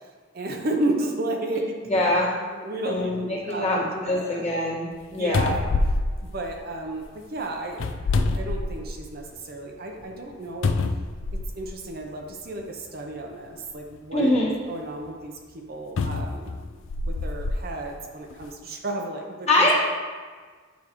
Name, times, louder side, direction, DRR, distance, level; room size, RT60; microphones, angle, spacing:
voice 1, 0.3-1.8 2.6-4.5 5.1-5.6 6.2-10.8 11.3-16.6 17.0-19.7, right 1 dB, 50° right, 1 dB, 0.7 m, -33 dB
voice 2, 1.8-2.3 2.8-4.9 5.1-5.5 14.1-14.5 19.5-19.7, left 1 dB, 35° left, -6 dB, 1.6 m, -23 dB
sound 1, 4.9-5.0 5.3-7.0 7.7-9.1 9.6-9.7 10.6-11.7 12.7-12.8 16.0-17.6 18.3-18.4, left 3 dB, 70° left, 0.4 m, -26 dB
9.5 x 4.6 x 3.1 m, 1.5 s
head